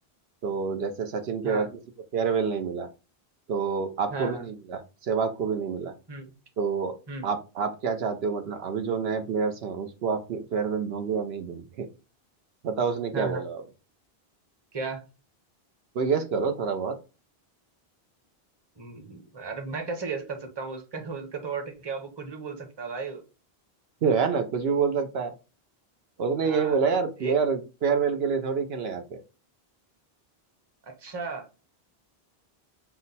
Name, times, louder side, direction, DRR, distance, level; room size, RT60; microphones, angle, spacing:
voice 1, 0.4-1.7 2.1-2.9 3.5-5.9 6.6-7.0 7.2-11.9 12.6-13.6 15.9-16.9 24.0-25.3 26.2-29.2, right 5 dB, 75° right, 7 dB, 0.9 m, -27 dB
voice 2, 4.1-4.5 6.1-6.3 7.1-7.3 13.1-13.4 14.7-15.0 18.8-23.2 26.4-26.8 27.2-27.3 30.8-31.5, right 4 dB, 25° right, 5 dB, 0.9 m, -35 dB
5.9 x 2.0 x 4.0 m, 0.30 s
omnidirectional pair, 1.0 m